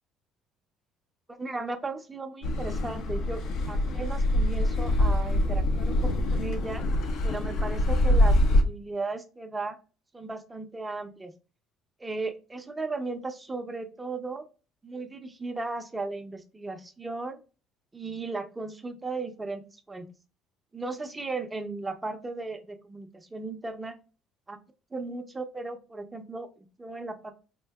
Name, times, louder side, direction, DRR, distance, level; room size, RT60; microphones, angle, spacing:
voice 1, 1.4-3.4 3.7-6.8 7.2-9.8 10.1-11.3 12.0-14.5 14.8-17.4 17.9-19.6 19.9-20.1 20.7-24.0 24.5-24.6 24.9-27.3, right 3 dB, 15° right, 6 dB, 0.6 m, -36 dB
Car passing by / Accelerating revving vroom, 2.4-8.6, left 1 dB, 60° left, 0.6 m, -24 dB
4.4 x 2.5 x 2.3 m, 0.33 s
cardioid pair, 120°, 0 cm